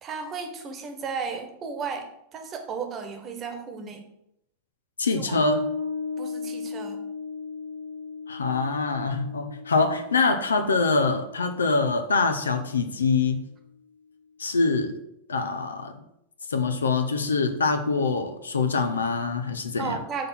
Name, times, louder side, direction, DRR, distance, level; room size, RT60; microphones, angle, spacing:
voice 1, 0.0-2.1 2.3-4.0 5.1-5.4 6.2-7.0 19.8-20.3, right 5 dB, 30° right, 4 dB, 1.3 m, -34 dB
voice 2, 5.0-5.6 8.3-13.4 14.4-14.9 15.3-16.0 16.5-20.0, left 4 dB, 70° left, 8 dB, 0.8 m, -24 dB
Bass guitar, 5.3-12.5, left 5 dB, 85° right, 1.0 m, -36 dB
6.6 x 4.1 x 6.0 m, 0.78 s
figure-of-eight pair, 90°, 0 cm